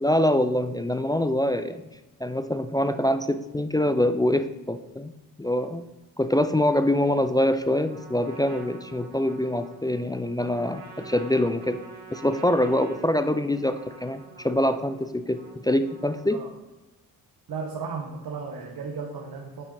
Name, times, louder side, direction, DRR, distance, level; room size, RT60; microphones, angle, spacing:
voice 1, 0.0-1.8 2.2-5.1 5.4-5.8 6.2-11.8 12.1-16.4, left 1 dB, 10° left, 9 dB, 0.4 m, -24 dB
Trumpet, 7.8-16.5, right 4 dB, 25° right, 2.5 m, -46 dB
voice 2, 17.5-19.7, right 5 dB, 65° right, 0 dB, 1.2 m, -35 dB
9.0 x 4.9 x 4.2 m, 1.0 s
cardioid pair, 85°, 38 cm